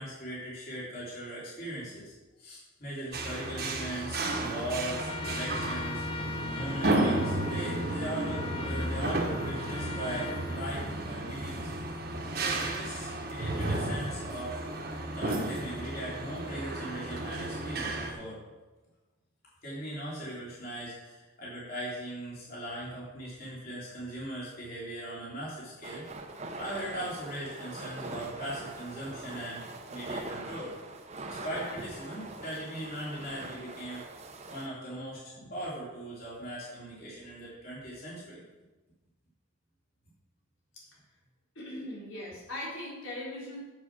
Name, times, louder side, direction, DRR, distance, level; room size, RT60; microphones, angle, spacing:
voice 1, 0.0-2.1 2.4-11.7 12.3-14.6 15.1-18.4 19.6-26.0 26.6-29.6 29.9-30.7 31.3-34.0 34.5-38.4, right 1 dB, 45° left, -7 dB, 3.4 m, -39 dB
sound 1, 3.1-18.1, right 2 dB, 45° right, 1.2 m, -33 dB
Trumpet, 4.9-11.4, left 4 dB, 25° left, 0.4 m, -42 dB
sound 2, 25.8-34.7, right 2 dB, 30° right, 0.8 m, -42 dB
voice 2, 41.6-43.6, left 1 dB, 75° left, -6 dB, 3.7 m, -40 dB
7.6 x 7.5 x 6.1 m, 1.2 s
head